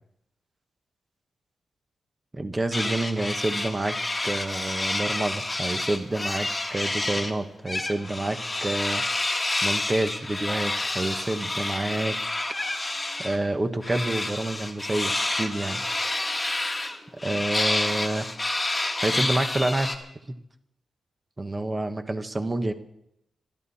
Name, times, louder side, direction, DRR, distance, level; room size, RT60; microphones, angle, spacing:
voice 1, 2.3-4.0 4.2-9.0 9.6-12.2 13.2-15.8 17.2-18.3 19.0-19.9 21.4-22.7, right 2 dB, 25° right, 8 dB, 1.3 m, -28 dB
sound 1, 2.7-7.3 7.7-13.4 13.8-20.0, left 2 dB, 15° left, 1.6 m, -29 dB
26.5 x 11.5 x 4.3 m, 0.78 s
wide cardioid pair, 120°, 0 cm